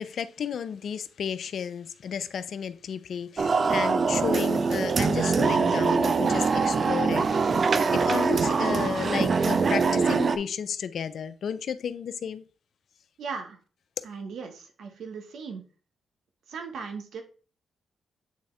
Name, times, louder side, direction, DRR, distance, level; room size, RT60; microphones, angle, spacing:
voice 1, 0.0-7.6 7.9-12.4, left 7 dB, 70° left, 0.5 m, -33 dB
sound 1, 3.4-10.4, right 5 dB, 50° right, 0.5 m, -23 dB
voice 2, 13.2-13.6 14.0-15.6 16.5-17.2, right 5 dB, 80° right, 1.1 m, -37 dB
8.2 x 3.6 x 3.2 m
cardioid pair, 75°, 0 cm